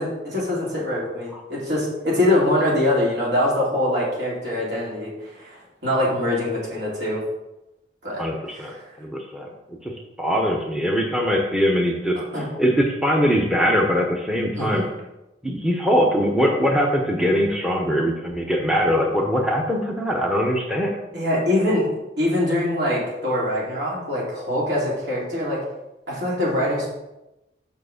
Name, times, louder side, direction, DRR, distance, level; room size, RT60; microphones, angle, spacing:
voice 1, 0.0-7.2 8.0-8.2 8.5-8.8 12.3-12.5 14.6-14.9 21.1-21.9 22.2-25.6 26.1-26.9, left 1 dB, 65° right, -5 dB, 2.8 m, -23 dB
voice 2, 8.2-9.5 9.8-9.9 10.2-12.2 12.6-14.8 15.4-21.0, equal, 5° right, 0 dB, 0.7 m, -22 dB
5.7 x 4.7 x 6.4 m, 0.95 s
head